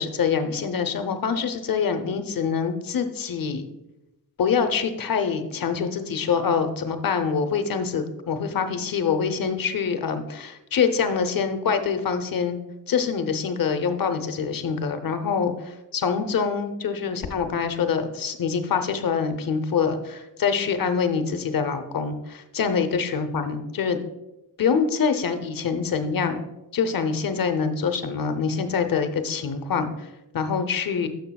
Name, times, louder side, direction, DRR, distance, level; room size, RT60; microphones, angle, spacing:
voice 1, 0.0-3.6 4.4-12.6 12.9-15.5 15.9-24.0 24.6-26.5 26.7-29.9 30.3-31.1, left 6 dB, 60° left, 8 dB, 0.7 m, -25 dB
11.0 x 6.6 x 2.3 m, 0.96 s
wide cardioid pair, 160°, 38 cm